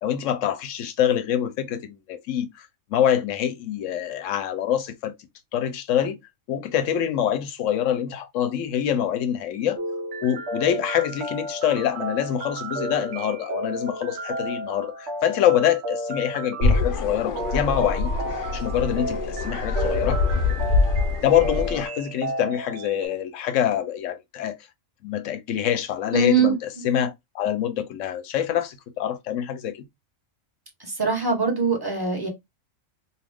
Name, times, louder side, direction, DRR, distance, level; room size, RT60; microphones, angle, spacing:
voice 1, 0.0-5.1 5.5-6.2 6.5-9.8 10.2-18.1 18.5-20.2 21.2-24.6 25.0-26.6 26.8-29.8, left 10 dB, 75° left, 1.0 m, -25 dB
sound 1, 9.8-23.1, right 1 dB, 70° right, 1.0 m, -33 dB
sound 2, 16.6-21.9, left 3 dB, 55° left, 0.6 m, -24 dB
voice 2, 26.1-26.6 30.8-32.3, right 4 dB, 20° right, 0.9 m, -22 dB
2.7 x 2.4 x 3.4 m
omnidirectional pair, 1.3 m